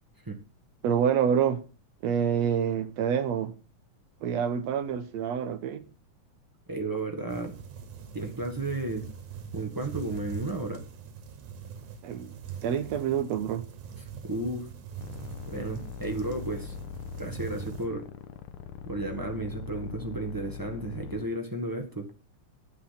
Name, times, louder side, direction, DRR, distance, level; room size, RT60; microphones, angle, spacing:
voice 1, 0.8-1.6 2.0-3.5 4.2-5.9 12.0-12.3 12.6-13.6, right 8 dB, 70° right, 2.0 m, -27 dB
voice 2, 6.7-7.6 8.1-9.1 9.5-10.8 14.2-14.7 15.5-16.7 17.2-18.0 18.8-22.1, right 2 dB, 25° right, 0.4 m, -33 dB
sound 1, 7.3-17.9, right 7 dB, 85° right, 2.9 m, -43 dB
sound 2, 15.0-21.3, left 7 dB, 85° left, 2.3 m, -41 dB
10.0 x 7.6 x 5.8 m
omnidirectional pair, 3.4 m